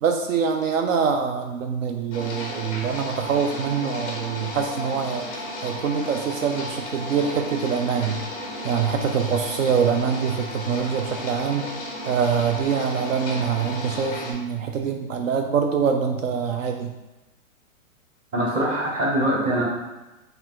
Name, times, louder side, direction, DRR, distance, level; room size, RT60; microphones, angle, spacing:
voice 1, 0.0-5.3 5.6-8.2 8.6-11.7 12.0-16.9, right 6 dB, 70° right, 4 dB, 0.6 m, -24 dB
sound 1, 2.1-14.3, equal, 15° left, 0.4 m, -34 dB
voice 2, 18.3-19.6, right 1 dB, 20° right, -4 dB, 0.9 m, -23 dB
4.8 x 2.6 x 3.6 m, 1.1 s
hypercardioid pair, 145°, 42 cm